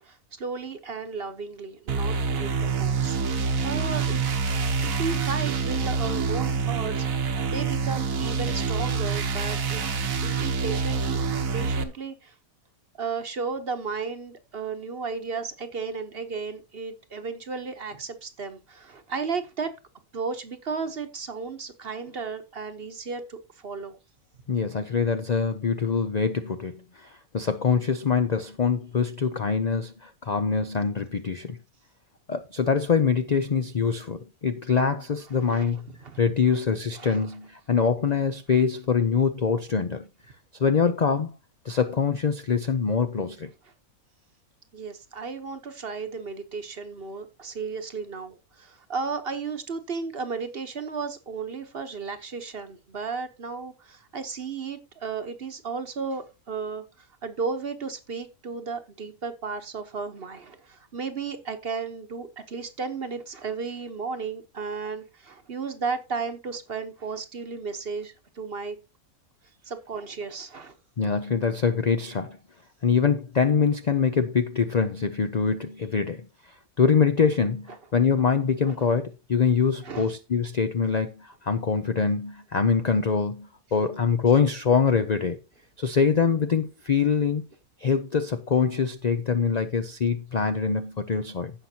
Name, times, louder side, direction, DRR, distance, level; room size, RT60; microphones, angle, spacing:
voice 1, 0.0-12.3 12.9-19.7 20.1-24.0 35.4-36.2 36.9-37.2 44.7-68.8 69.6-70.7 78.7-78.8 79.8-80.1, right 5 dB, 45° right, 1.1 m, -34 dB
sound 1, 1.9-11.8, right 5 dB, 65° right, 1.4 m, -26 dB
voice 2, 24.5-31.6 32.3-35.8 36.2-40.1 40.6-41.3 41.6-43.5 71.0-72.4 72.8-76.2 76.8-85.4 85.8-87.4 87.8-91.5, left 5 dB, 50° left, 0.5 m, -24 dB
15.5 x 5.8 x 2.8 m
omnidirectional pair, 1.5 m